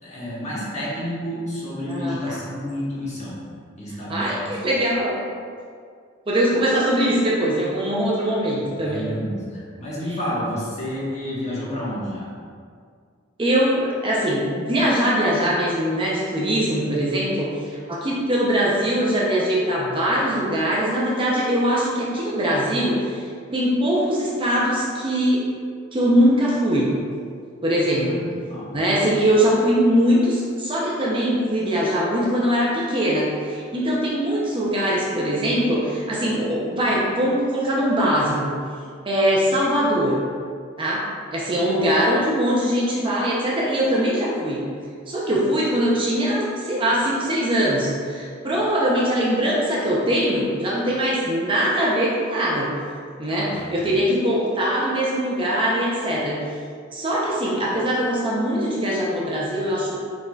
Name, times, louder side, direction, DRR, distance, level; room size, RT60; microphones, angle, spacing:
voice 1, 0.0-3.4 3.8-4.6 8.6-12.3 27.8-28.7 53.4-53.7, equal, 35° left, -7 dB, 1.3 m, -30 dB
voice 2, 1.9-2.4 4.1-5.2 6.3-9.1 13.4-25.4 25.9-26.9 27.6-28.2 28.7-38.5 39.1-40.2 40.8-41.0 41.3-44.6 45.1-52.7 53.2-56.4 56.9-60.0, equal, 25° right, -5 dB, 0.6 m, -22 dB
4.7 x 4.5 x 2.3 m, 2.1 s
head